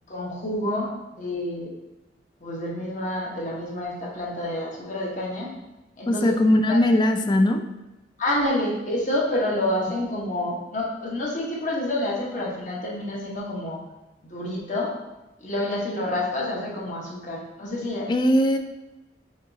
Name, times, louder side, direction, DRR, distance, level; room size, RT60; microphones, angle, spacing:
voice 1, 0.1-1.7 2.4-5.5 6.0-6.3 6.7-6.8 8.2-13.8 14.2-14.9 15.4-18.1, left 1 dB, 45° left, -3 dB, 1.1 m, -28 dB
voice 2, 6.1-7.6 18.1-18.6, left 1 dB, 25° left, 7 dB, 0.3 m, -19 dB
5.1 x 3.9 x 2.7 m, 1.0 s
head